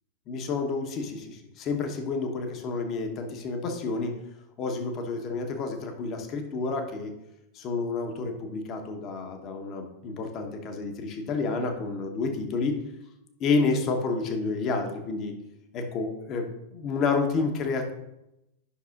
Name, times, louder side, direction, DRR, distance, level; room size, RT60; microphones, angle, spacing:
voice 1, 0.3-4.2 4.6-7.1 7.5-12.8 13.4-15.3 15.7-17.9, left 4 dB, 35° left, 4 dB, 1.1 m, -29 dB
10.0 x 5.9 x 2.5 m, 0.89 s
figure-of-eight pair, 90°, 0 cm